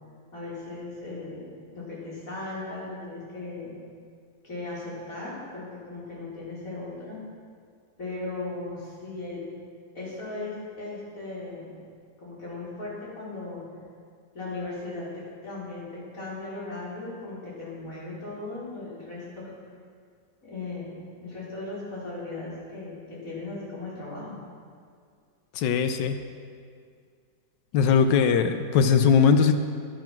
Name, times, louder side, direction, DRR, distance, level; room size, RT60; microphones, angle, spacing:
voice 1, 0.3-1.5 1.7-3.7 4.4-7.2 8.0-9.4 9.9-11.7 12.2-13.6 14.3-19.6 20.4-24.4, left 2 dB, 50° left, -7 dB, 4.9 m, -37 dB
voice 2, 25.6-26.2 27.7-29.6, left 6 dB, 85° left, 8 dB, 1.4 m, -20 dB
15.5 x 11.5 x 6.0 m, 2.1 s
omnidirectional pair, 1.9 m